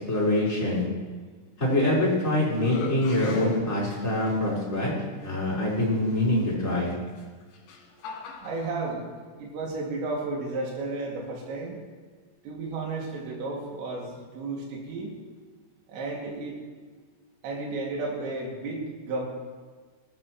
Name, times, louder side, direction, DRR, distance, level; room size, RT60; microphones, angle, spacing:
voice 1, 0.1-0.8 1.6-4.9 5.2-6.9, left 1 dB, 15° left, -6 dB, 4.8 m, -24 dB
sound 1, 1.7-2.2 2.6-4.4 5.2-5.3 7.1-8.8, left 6 dB, 70° left, 4.1 m, -40 dB
voice 2, 8.4-11.8 12.4-15.2 15.9-16.6 17.4-19.2, right 3 dB, 65° right, -2 dB, 4.5 m, -33 dB
20.0 x 15.5 x 3.1 m, 1.5 s
omnidirectional pair, 5.8 m